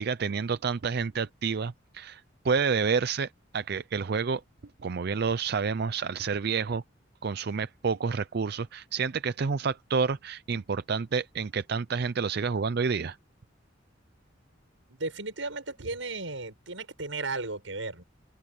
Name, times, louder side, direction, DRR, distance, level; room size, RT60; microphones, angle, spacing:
voice 1, 0.0-4.4 4.8-6.8 7.2-13.2, right 5 dB, 55° right, 0.5 m, -29 dB
voice 2, 14.9-18.0, right 3 dB, 85° right, 7.0 m, -35 dB
open air
head